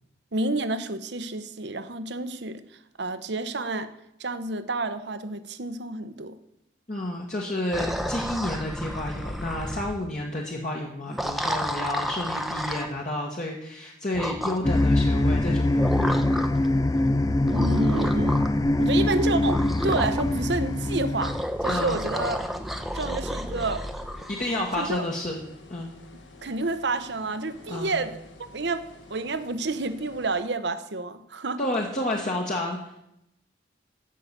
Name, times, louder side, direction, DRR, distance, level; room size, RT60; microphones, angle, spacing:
voice 1, 0.3-2.6 3.0-3.9 4.2-6.4 17.5-18.4 18.8-21.3 21.6-22.4 22.9-23.9 24.8-25.0 26.4-31.6, right 2 dB, 70° right, 11 dB, 0.9 m, -29 dB
voice 2, 6.9-16.2 21.7-22.0 24.3-25.4 25.7-25.9 27.7-28.0 31.6-33.0, left 1 dB, 40° left, -2 dB, 1.5 m, -30 dB
Gurgling monster, 7.7-10.0 11.1-12.9 14.1-14.9 15.8-16.7 17.5-18.6 19.2-20.3 21.2-25.0, equal, ahead, 0.8 m, -31 dB
sound 1, 14.6-21.4, left 1 dB, 20° left, 0.4 m, -23 dB
sound 2, 19.6-30.3, left 3 dB, 85° left, 1.7 m, -50 dB
14.5 x 5.7 x 8.2 m, 0.82 s
head